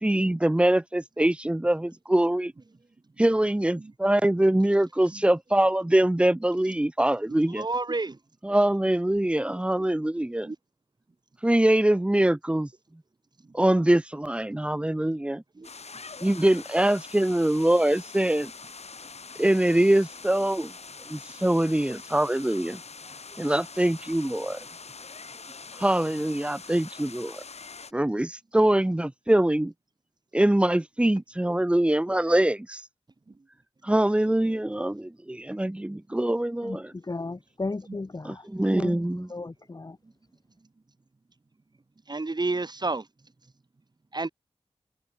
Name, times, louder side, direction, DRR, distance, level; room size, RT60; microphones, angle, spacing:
voice 1, 0.0-2.5 3.2-7.7 8.4-10.5 11.4-12.7 13.5-15.4 16.2-18.5 19.4-20.7 21.1-22.8 23.4-24.6 25.8-27.4 27.9-29.7 30.3-32.8 33.8-36.8 38.3-39.3, right 1 dB, 10° right, 0.5 m, -23 dB
voice 2, 7.6-8.2 10.4-10.6 15.6-15.7 42.1-43.0 44.1-44.3, right 3 dB, 40° right, 2.5 m, -29 dB
sound 1, 15.6-27.9, left 4 dB, 75° left, 4.0 m, -44 dB
voice 3, 36.6-38.4 38.7-39.0 39.3-40.0, left 3 dB, 35° left, 1.6 m, -35 dB
wide cardioid pair, 90°, 11 cm